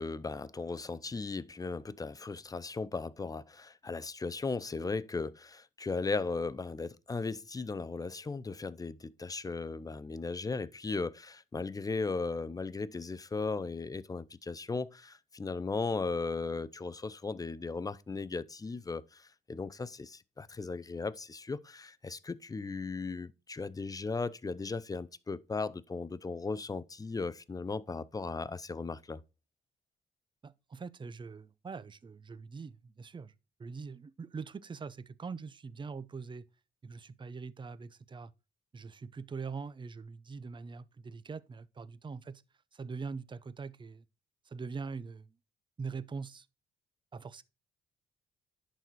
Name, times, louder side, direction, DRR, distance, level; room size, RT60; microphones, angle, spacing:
voice 1, 0.0-29.2, left 4 dB, 20° left, 0.6 m, -37 dB
voice 2, 30.4-33.3 33.6-36.4 36.8-38.3 38.7-42.4 42.7-44.0 44.5-45.3 45.8-46.5 47.1-47.4, right 5 dB, 25° right, 0.6 m, -43 dB
11.0 x 4.2 x 4.6 m
cardioid pair, 90°, 20 cm